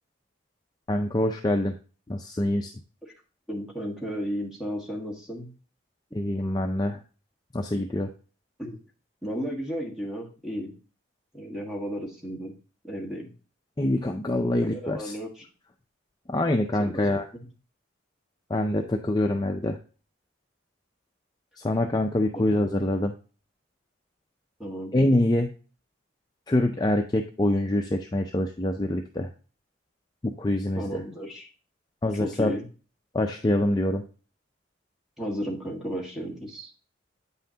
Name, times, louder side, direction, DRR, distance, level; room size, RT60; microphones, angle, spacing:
voice 1, 0.9-1.7 2.1-2.7 6.1-7.0 7.5-8.1 13.8-15.1 16.3-17.3 18.5-19.8 21.6-23.1 24.9-25.5 26.5-29.3 30.2-31.0 32.0-32.5 33.1-34.0, left 1 dB, 20° left, 4 dB, 0.4 m, -25 dB
voice 2, 3.5-5.5 8.6-8.8 9.2-10.7 11.3-12.5 12.8-13.3 14.6-15.4 16.8-17.0 17.3-17.5 22.3-22.5 24.6-24.9 30.7-31.5 32.1-32.6 35.2-36.7, equal, ahead, -1 dB, 1.4 m, -34 dB
8.5 x 5.6 x 2.8 m, 0.36 s
head